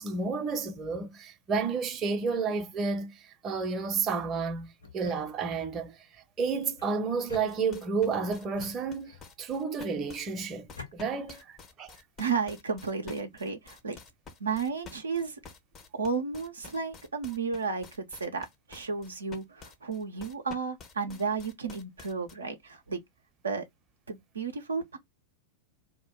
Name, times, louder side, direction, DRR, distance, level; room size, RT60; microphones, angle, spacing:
voice 1, 0.0-4.7 4.9-5.9 6.4-11.9 21.1-21.2, right 4 dB, 25° right, 0.6 m, -31 dB
sound 1, 4.8-5.8 6.8-8.0 8.5-9.4 10.2-10.9, left 4 dB, 80° left, 0.9 m, -48 dB
sound 2, 7.5-22.3, left 5 dB, 25° left, 0.5 m, -49 dB
voice 2, 12.2-14.0 14.4-15.4 15.9-23.0 23.4-23.7 24.1-25.0, right 5 dB, 75° right, 0.5 m, -33 dB
2.2 x 2.1 x 2.9 m
figure-of-eight pair, 90°, 0 cm